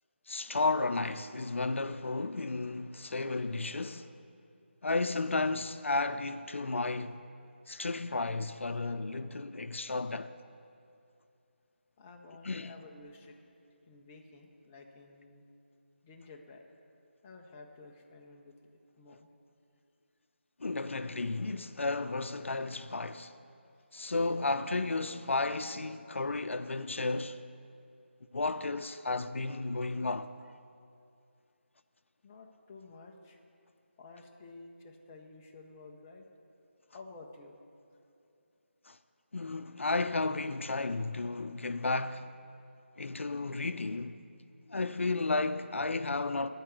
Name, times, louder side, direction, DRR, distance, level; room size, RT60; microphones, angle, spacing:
voice 1, 0.3-4.1 4.8-7.3 7.7-10.3 12.4-12.7 20.6-23.3 23.9-27.4 28.3-30.3 38.9-39.0 39.3-42.4 43.0-44.2 44.7-46.5, left 3 dB, 85° left, 0.4 m, -33 dB
voice 2, 12.0-13.4 13.9-15.4 16.0-16.6 17.2-18.5 19.0-19.3 32.2-33.4 34.0-36.3 36.9-37.6, left 3 dB, 15° left, 0.4 m, -52 dB
12.5 x 4.7 x 7.7 m
figure-of-eight pair, 170°, 7 cm